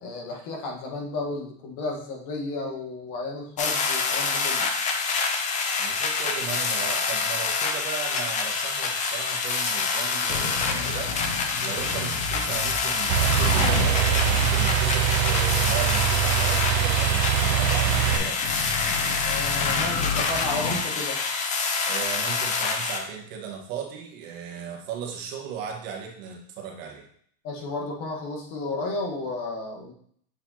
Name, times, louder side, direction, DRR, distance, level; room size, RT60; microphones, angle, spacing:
voice 1, 0.0-4.7 19.2-21.2 27.4-29.9, left 2 dB, 45° left, 0 dB, 1.5 m, -33 dB
sound 1, 3.6-23.0, left 4 dB, 20° left, 0.4 m, -27 dB
voice 2, 5.8-11.1 11.6-18.4 21.8-27.1, right 7 dB, 60° right, 1 dB, 1.5 m, -36 dB
sound 2, 10.3-20.8, left 3 dB, 70° left, 2.7 m, -31 dB
sound 3, 13.1-18.2, right 11 dB, 40° right, 0.5 m, -23 dB
7.8 x 4.3 x 2.9 m, 0.62 s
supercardioid pair, 140°, 44 cm